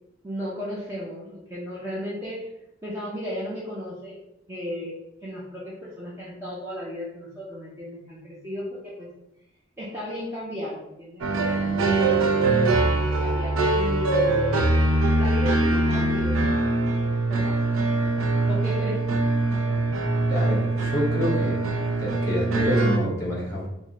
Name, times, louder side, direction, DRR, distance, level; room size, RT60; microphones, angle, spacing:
voice 1, 0.2-2.5 2.8-4.2 4.5-4.9 5.2-9.1 9.8-12.7 13.2-14.6 15.2-16.5 17.3-17.8 18.5-19.2, equal, 15° right, -7 dB, 0.5 m, -34 dB
sound 1, 11.2-23.0, right 2 dB, 90° right, 0.5 m, -23 dB
voice 2, 20.3-21.6 22.0-23.7, equal, 15° left, -6 dB, 1.2 m, -27 dB
3.5 x 2.1 x 3.6 m, 0.87 s
head